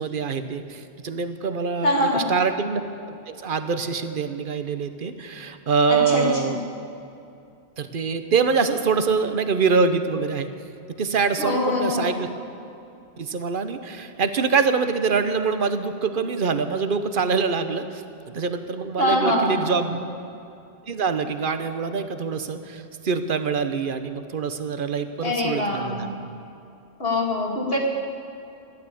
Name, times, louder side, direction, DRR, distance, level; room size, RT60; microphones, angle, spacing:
voice 1, 0.0-2.8 3.1-6.6 7.8-10.5 11.0-12.3 13.2-20.0 20.9-26.1, right 5 dB, 50° right, 10 dB, 1.0 m, -25 dB
voice 2, 1.8-2.3 5.9-6.6 11.4-12.1 19.0-19.8 25.2-26.1 27.0-27.8, left 1 dB, 55° left, 0 dB, 2.6 m, -24 dB
14.5 x 12.0 x 8.4 m, 2.7 s
omnidirectional pair, 1.2 m